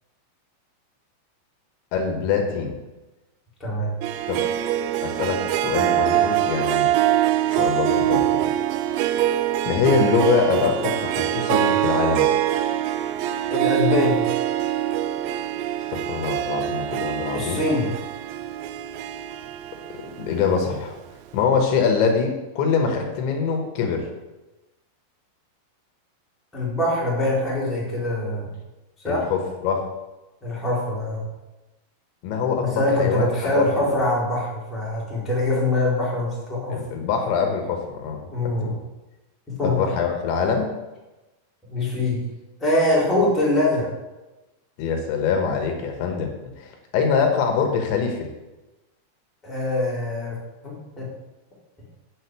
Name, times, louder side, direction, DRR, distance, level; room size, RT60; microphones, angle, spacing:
voice 1, 1.9-2.7 4.3-4.4 5.0-6.9 7.6-8.2 9.7-12.3 15.9-17.6 20.2-20.9 21.3-24.1 29.1-29.8 32.2-34.0 36.7-38.2 38.6-38.8 39.6-40.7 44.8-46.3 46.6-48.2, left 5 dB, 80° left, 3 dB, 3.6 m, -24 dB
voice 2, 3.6-3.9 13.5-14.4 17.3-17.9 26.5-28.5 29.0-29.3 30.4-31.2 32.6-36.8 38.3-38.7 39.5-39.8 41.7-42.2 42.6-43.9 49.4-50.3 50.6-51.1, left 1 dB, ahead, -5 dB, 3.2 m, -23 dB
Harp, 4.0-20.8, right 12 dB, 85° right, 2.7 m, -24 dB
8.6 x 6.5 x 8.2 m, 1.1 s
omnidirectional pair, 5.3 m